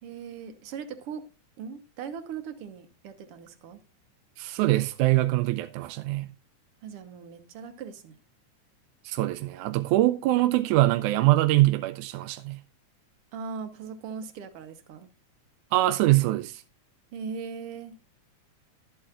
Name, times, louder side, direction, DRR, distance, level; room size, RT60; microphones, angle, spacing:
voice 1, 0.0-1.3 1.6-3.8 6.8-8.2 13.3-15.1 17.1-18.0, right 6 dB, 60° right, 1.7 m, -39 dB
voice 2, 4.4-6.3 9.1-12.6 15.7-16.6, right 16 dB, 85° right, 2.1 m, -23 dB
12.5 x 8.5 x 2.4 m
omnidirectional pair, 3.5 m